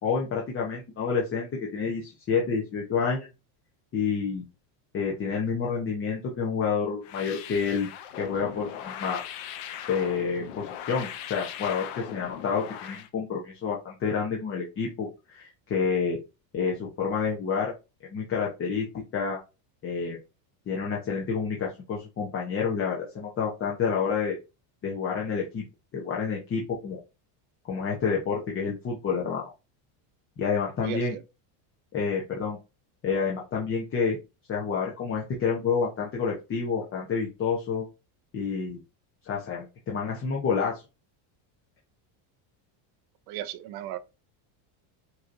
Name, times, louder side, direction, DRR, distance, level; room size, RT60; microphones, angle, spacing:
voice 1, 0.0-3.3 3.9-4.4 4.9-7.9 8.2-9.2 9.9-16.2 16.5-17.7 18.1-18.9 19.1-19.4 19.8-20.2 20.7-24.4 24.8-25.6 25.9-27.0 27.7-29.5 30.4-31.2 31.9-32.6 33.0-34.2 34.5-37.9 38.3-38.8 39.2-40.8, left 5 dB, 25° left, 0.9 m, -29 dB
sound 1, 7.0-13.1, left 10 dB, 60° left, 0.8 m, -39 dB
voice 2, 30.8-31.2 43.3-44.0, right 13 dB, 50° right, 0.5 m, -35 dB
5.7 x 2.9 x 2.6 m
cardioid pair, 155°, 50 cm